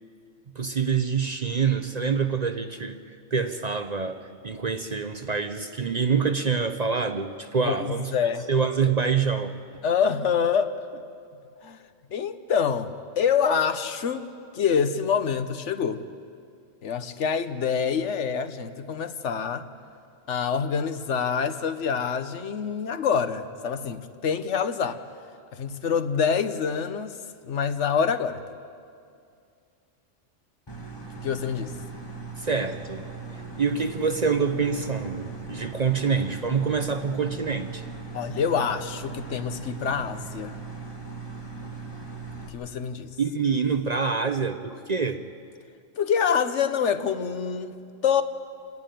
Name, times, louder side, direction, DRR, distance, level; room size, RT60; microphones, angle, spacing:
voice 1, 0.5-8.1 8.5-9.6 32.4-33.1 33.6-37.9 43.2-45.2, right 5 dB, 45° right, 8 dB, 0.7 m, -26 dB
voice 2, 7.6-8.4 9.8-11.0 11.6-11.8 12.1-14.3 14.5-16.0 16.8-19.7 20.3-25.0 25.5-27.2 27.5-28.4 31.2-31.7 38.1-40.6 42.5-43.1 46.0-48.2, left 7 dB, 75° left, 10 dB, 1.2 m, -26 dB
sound 1, 30.7-42.5, right 4 dB, 20° left, 1.9 m, -39 dB
27.5 x 11.0 x 9.1 m, 2.4 s
omnidirectional pair, 1.2 m